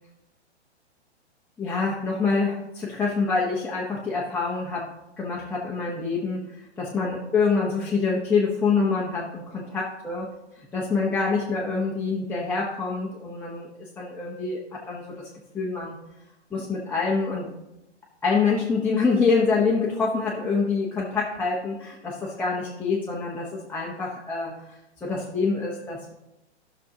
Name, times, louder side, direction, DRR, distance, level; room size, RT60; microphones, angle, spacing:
voice 1, 1.6-4.9 5.2-6.4 6.8-10.2 10.7-15.3 15.5-16.0 16.5-17.5 18.2-24.5 25.0-26.1, left 4 dB, 5° left, -6 dB, 1.0 m, -26 dB
14.0 x 6.3 x 2.8 m, 0.93 s
hypercardioid pair, 130°, 34 cm